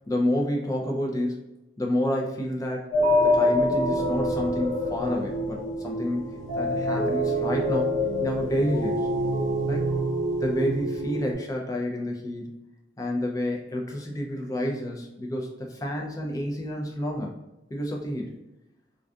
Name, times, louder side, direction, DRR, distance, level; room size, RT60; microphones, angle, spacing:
voice 1, 0.1-1.5 1.8-2.9 3.2-9.1 9.7-9.9 10.4-12.5 13.0-17.3 17.7-18.3, left 1 dB, 20° left, 0 dB, 0.4 m, -29 dB
sound 1, 2.9-11.3, equal, 40° left, 0.8 m, -26 dB
2.5 x 2.3 x 2.3 m, 0.93 s
head